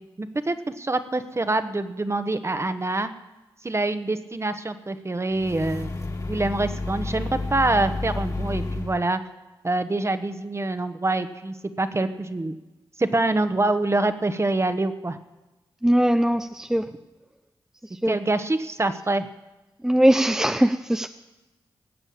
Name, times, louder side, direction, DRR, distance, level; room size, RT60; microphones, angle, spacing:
voice 1, 0.2-3.1 3.6-5.9 6.3-9.2 9.6-12.6 13.0-15.2 18.0-19.3, right 2 dB, 30° right, 10 dB, 1.2 m, -25 dB
sound 1, 5.3-9.0, left 2 dB, 40° left, 2.2 m, -30 dB
voice 2, 15.8-16.9 18.0-18.2 19.8-21.1, right 1 dB, 5° right, 8 dB, 0.6 m, -20 dB
18.0 x 7.0 x 8.6 m, 1.1 s
supercardioid pair, 45°, 9 cm